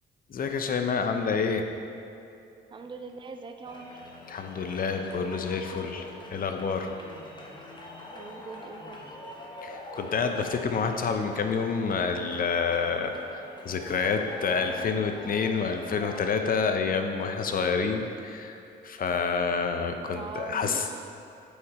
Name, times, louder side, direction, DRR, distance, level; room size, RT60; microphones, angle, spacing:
voice 1, 0.3-1.7 4.3-6.0 6.3-6.9 9.6-18.6 18.8-20.9, left 5 dB, 45° left, 5 dB, 0.7 m, -28 dB
voice 2, 2.7-4.0 8.1-9.0 20.1-21.0, right 4 dB, 25° right, 6 dB, 0.5 m, -41 dB
sound 1, 3.7-16.2, left 1 dB, 20° left, 1.0 m, -44 dB
8.2 x 4.9 x 4.2 m, 2.6 s
cardioid pair, 90°, 20 cm